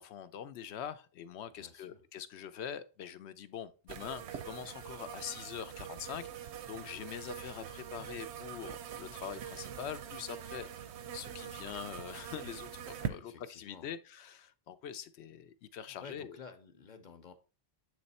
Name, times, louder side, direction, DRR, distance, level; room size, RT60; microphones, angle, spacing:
voice 1, 0.0-16.4, left 9 dB, 75° left, 0.8 m, -44 dB
voice 2, 1.5-2.0 11.4-11.5 13.0-13.9 15.8-17.3, left 5 dB, 50° left, 0.8 m, -52 dB
sound 1, 3.9-13.1, right 9 dB, 80° right, 0.9 m, -44 dB
7.8 x 3.2 x 4.1 m
omnidirectional pair, 1.1 m